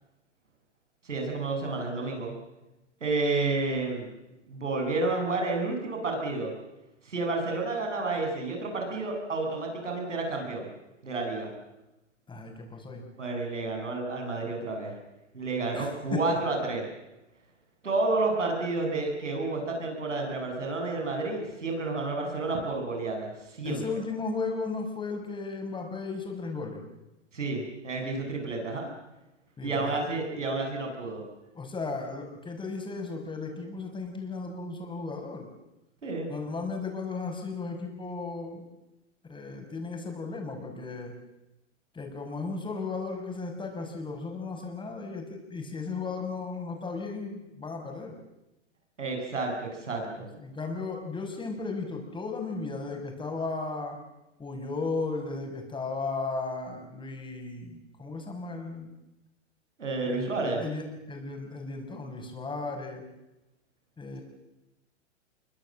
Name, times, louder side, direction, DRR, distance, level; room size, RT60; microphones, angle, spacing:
voice 1, 1.0-2.3 3.0-4.1 4.5-6.5 7.0-10.7 11.0-11.5 13.2-15.0 15.3-16.9 17.8-23.8 27.3-28.9 29.6-31.2 36.0-36.3 49.0-50.3 59.8-60.6, right 3 dB, 90° right, 2 dB, 7.9 m, -30 dB
voice 2, 12.3-13.0 15.7-16.4 23.6-26.8 29.6-30.0 31.6-35.5 36.3-38.6 39.3-41.1 41.9-48.1 50.4-54.0 54.4-58.9 60.0-63.0 64.0-64.2, left 3 dB, 15° left, 3 dB, 5.9 m, -35 dB
26.5 x 23.0 x 7.6 m, 0.96 s
hypercardioid pair, 115°, 36 cm